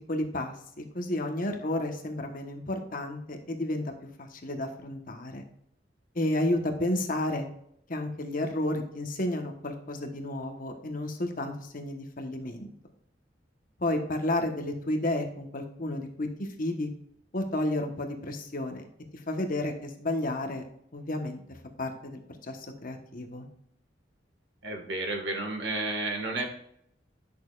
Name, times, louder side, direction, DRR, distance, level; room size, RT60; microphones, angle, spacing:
voice 1, 0.1-3.9 4.2-5.4 6.1-7.4 7.9-12.7 13.8-16.9 17.3-18.9 19.1-20.7 20.9-23.5, left 1 dB, 50° left, 4 dB, 1.2 m, -32 dB
voice 2, 24.6-26.5, right 2 dB, 70° right, 3 dB, 1.7 m, -31 dB
10.5 x 6.5 x 2.4 m, 0.71 s
head